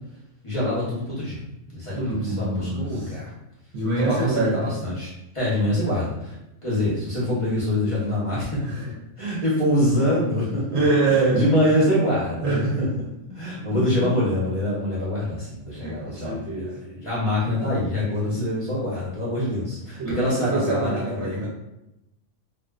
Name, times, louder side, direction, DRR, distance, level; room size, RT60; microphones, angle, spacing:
voice 1, 0.4-1.4 1.7-3.3 4.0-6.3 6.6-8.6 9.2-10.7 11.0-12.9 13.3-21.5, left 1 dB, 35° left, -8 dB, 0.6 m, -25 dB
voice 2, 1.9-3.2 3.7-4.7 8.6-8.9 10.4-11.5 12.4-12.7 13.3-13.4 13.7-14.1 15.7-16.8 19.3-19.6 20.0-21.5, right 2 dB, 65° right, -5 dB, 0.9 m, -25 dB
2.5 x 2.2 x 2.3 m, 0.88 s
omnidirectional pair, 1.3 m